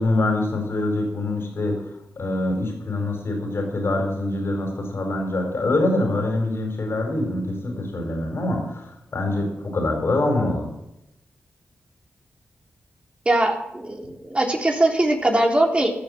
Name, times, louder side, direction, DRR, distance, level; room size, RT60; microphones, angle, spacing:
voice 1, 0.0-1.9 2.2-10.7, left 2 dB, 65° left, 2 dB, 4.6 m, -24 dB
voice 2, 13.3-15.9, right 1 dB, 25° right, 1 dB, 3.5 m, -21 dB
14.5 x 7.0 x 7.2 m, 0.85 s
supercardioid pair, 40°, 5 cm